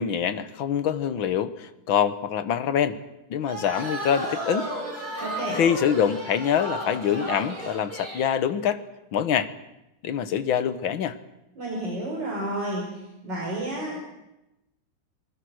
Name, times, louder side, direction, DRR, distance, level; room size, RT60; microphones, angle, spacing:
voice 1, 0.0-3.0 3.3-4.7 5.5-8.8 9.1-9.5 10.0-11.2, left 8 dB, 70° left, 13 dB, 1.9 m, -25 dB
sound 1, 3.4-8.3, right 1 dB, 70° right, 8.2 m, -33 dB
voice 2, 5.2-5.6 11.6-14.0, right 1 dB, 55° right, -3 dB, 5.7 m, -31 dB
27.0 x 20.0 x 6.4 m, 0.93 s
omnidirectional pair, 2.3 m